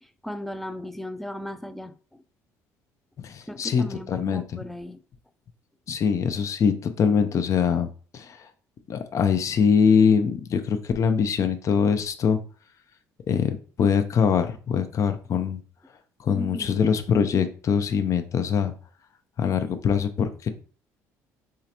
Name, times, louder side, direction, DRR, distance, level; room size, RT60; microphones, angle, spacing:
voice 1, 0.0-2.2 3.5-5.0 16.3-16.8, left 1 dB, 5° left, 0.4 m, -36 dB
voice 2, 3.2-4.4 5.9-7.9 8.1-8.4 8.9-12.4 13.3-15.6 16.2-18.7 19.4-20.5, left 6 dB, 50° left, 0.6 m, -23 dB
3.7 x 3.2 x 2.9 m
supercardioid pair, 75°, 7 cm